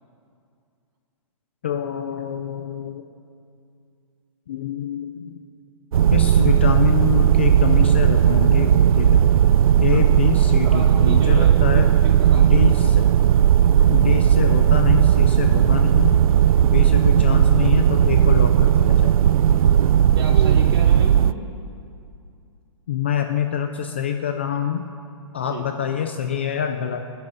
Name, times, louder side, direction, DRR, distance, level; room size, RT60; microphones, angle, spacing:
voice 1, 1.6-3.0 4.5-5.3 6.1-9.3 9.8-11.9 12.3-13.0 13.9-16.2 16.6-19.2 22.9-24.8 25.3-27.0, left 9 dB, 20° left, 6 dB, 0.3 m, -25 dB
sound 1, 5.9-21.3, right 10 dB, 85° right, 0.4 m, -16 dB
voice 2, 10.6-12.9 20.2-21.3 25.5-25.9, right 4 dB, 45° right, 1 dB, 2.3 m, -33 dB
25.5 x 10.5 x 3.9 m, 2.4 s
hypercardioid pair, 175°, 18 cm